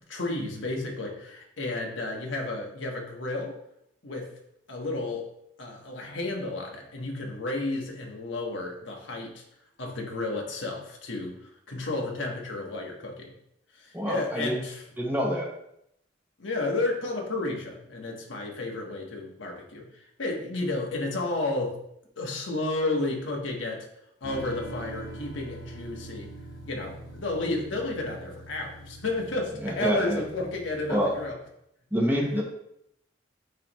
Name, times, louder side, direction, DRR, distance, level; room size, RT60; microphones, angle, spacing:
voice 1, 0.1-3.6 4.0-4.3 4.7-5.3 5.6-9.4 9.8-11.4 11.7-13.3 13.7-14.8 16.4-19.9 20.2-21.8 22.2-23.9 24.2-26.3 26.6-31.4 32.4-32.5, left 2 dB, 85° left, 0 dB, 1.3 m, -32 dB
voice 2, 13.9-14.6 15.0-15.5 29.6-30.2 30.9-31.1 31.9-32.4, equal, 10° right, -1 dB, 0.9 m, -26 dB
sound 1, 24.2-31.3, right 1 dB, 50° left, 1.1 m, -44 dB
9.3 x 3.3 x 3.0 m, 0.77 s
head